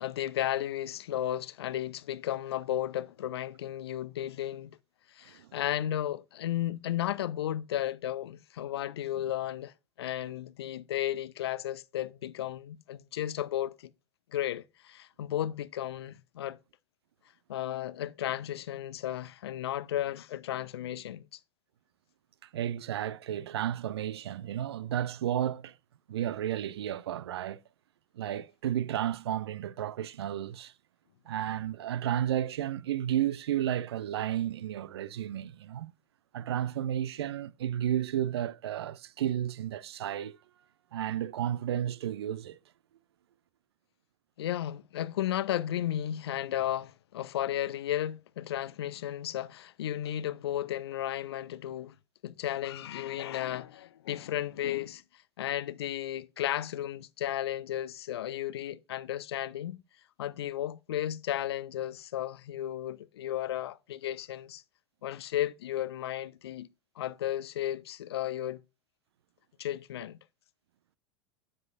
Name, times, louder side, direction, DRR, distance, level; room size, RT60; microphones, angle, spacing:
voice 1, 0.0-4.8 5.1-13.9 14.3-16.6 17.5-21.4 44.4-51.9 52.2-55.0 55.4-59.8 60.2-64.6 65.0-66.7 67.0-68.6 69.6-70.2, left 12 dB, 65° left, 0.5 m, -34 dB
voice 2, 5.3-5.6 22.5-25.7 26.1-27.6 28.2-30.7 31.3-35.9 36.3-40.4 40.9-42.6, right 11 dB, 65° right, 0.4 m, -32 dB
7.7 x 7.5 x 2.4 m
figure-of-eight pair, 85°, 15 cm